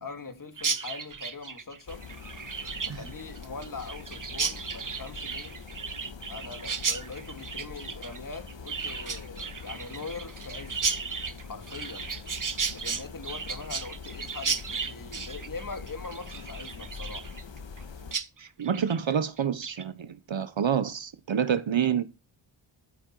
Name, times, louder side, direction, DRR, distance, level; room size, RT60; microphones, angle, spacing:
voice 1, 0.0-2.0 2.8-5.5 6.3-11.0 11.5-12.1 12.7-17.3, left 4 dB, 40° left, 2.5 m, -42 dB
Chirp tweet, 0.6-17.8 18.1-18.3 18.6-19.0 19.4-19.8, right 5 dB, 40° right, 1.0 m, -34 dB
sound 1, 1.9-18.2, left 5 dB, 60° left, 1.9 m, -44 dB
voice 2, 18.4-22.0, right 8 dB, 65° right, 1.0 m, -28 dB
14.0 x 8.6 x 4.6 m
wide cardioid pair, 90°, 49 cm